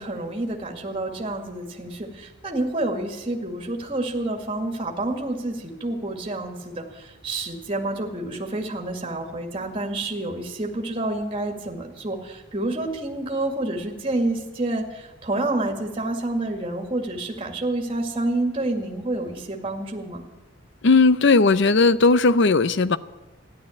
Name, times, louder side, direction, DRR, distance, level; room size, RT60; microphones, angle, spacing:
voice 1, 0.0-20.2, right 2 dB, 25° right, 2.1 m, -28 dB
voice 2, 20.8-23.0, left 3 dB, 60° left, 0.6 m, -17 dB
14.5 x 11.0 x 8.5 m
head